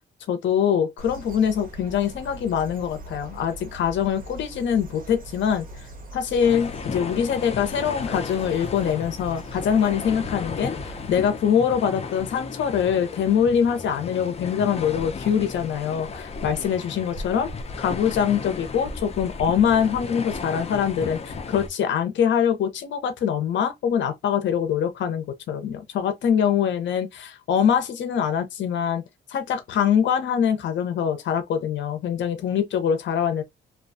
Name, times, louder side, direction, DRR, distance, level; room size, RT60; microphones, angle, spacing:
voice 1, 0.3-5.7 6.1-17.5 17.8-29.0 29.3-33.4, left 8 dB, 70° left, 0.7 m, -24 dB
sound 1, 1.0-11.2, right 1 dB, 45° right, 0.9 m, -41 dB
sound 2, 6.4-21.7, left 4 dB, 30° left, 0.5 m, -35 dB
2.4 x 2.2 x 2.6 m
cardioid pair, 90°, 20 cm